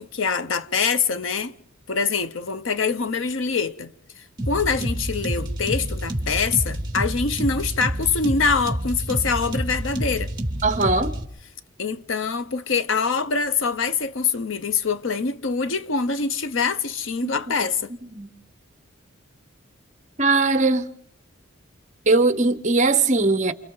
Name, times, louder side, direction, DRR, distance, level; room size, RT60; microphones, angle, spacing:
voice 1, 0.0-1.5 1.9-3.9 4.5-10.3 11.8-17.9, left 5 dB, 75° left, 0.8 m, -24 dB
sound 1, 4.4-11.2, right 1 dB, 20° right, 2.7 m, -28 dB
voice 2, 10.6-11.1 17.2-17.3 18.1-18.3 20.2-20.9 22.1-23.5, right 3 dB, 35° right, 1.1 m, -20 dB
29.0 x 28.5 x 4.0 m
head